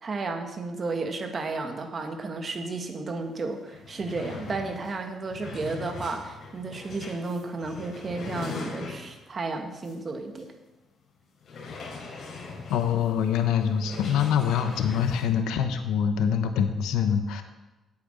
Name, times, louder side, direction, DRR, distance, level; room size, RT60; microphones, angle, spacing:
voice 1, 0.0-10.5, right 3 dB, 40° right, 5 dB, 1.5 m, -33 dB
sound 1, 3.3-3.4 3.6-9.3 9.8-10.0 10.4-10.5 11.4-15.3, left 4 dB, 60° left, 3.2 m, -41 dB
voice 2, 12.7-17.4, left 8 dB, 90° left, 7 dB, 0.9 m, -25 dB
8.5 x 8.5 x 6.4 m, 1.1 s
cardioid pair, 90°, 0 cm